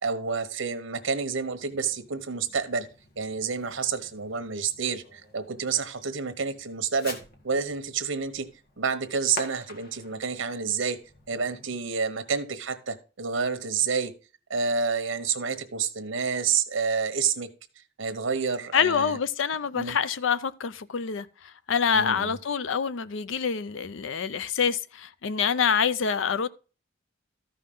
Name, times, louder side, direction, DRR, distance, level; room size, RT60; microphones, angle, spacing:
voice 1, 0.0-2.9 3.2-7.2 7.4-8.5 8.8-11.0 11.3-14.1 14.5-17.5 18.0-19.2 19.7-20.0 21.9-22.4, right 5 dB, 85° right, 1.1 m, -29 dB
Fireworks, 1.1-11.8, left 2 dB, 50° left, 1.8 m, -48 dB
voice 2, 18.7-26.5, left 6 dB, 75° left, 0.5 m, -26 dB
13.5 x 5.6 x 3.8 m
head